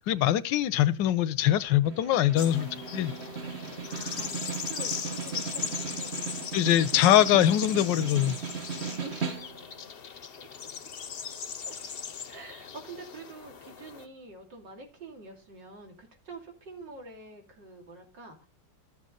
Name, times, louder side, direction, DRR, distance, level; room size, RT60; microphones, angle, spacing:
voice 1, 0.1-3.1 6.5-8.4, left 12 dB, 80° left, 1.4 m, -23 dB
Snare drum, 1.8-9.8, right 5 dB, 40° right, 1.4 m, -37 dB
sound 1, 2.4-14.1, left 7 dB, 45° left, 0.8 m, -39 dB
voice 2, 3.9-6.5 9.0-9.4 11.7-11.8 12.3-18.5, right 3 dB, 75° right, 3.3 m, -46 dB
13.5 x 7.4 x 3.8 m
omnidirectional pair, 2.0 m